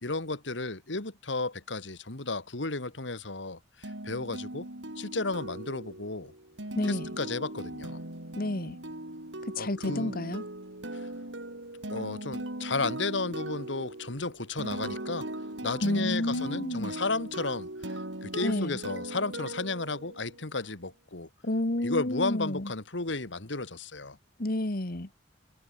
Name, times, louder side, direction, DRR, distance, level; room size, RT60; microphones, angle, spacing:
voice 1, 0.0-4.7 5.0-6.3 6.8-8.0 9.6-10.1 10.9-11.1 11.9-15.3 15.6-17.7 18.2-21.3 21.8-24.2, left 3 dB, 70° left, 2.2 m, -33 dB
sound 1, 3.8-20.5, right 1 dB, 75° right, 5.8 m, -39 dB
voice 2, 6.8-7.1 8.4-8.8 9.6-10.4 15.8-16.9 18.4-18.8 21.4-22.7 24.4-25.1, left 1 dB, 55° left, 1.8 m, -30 dB
head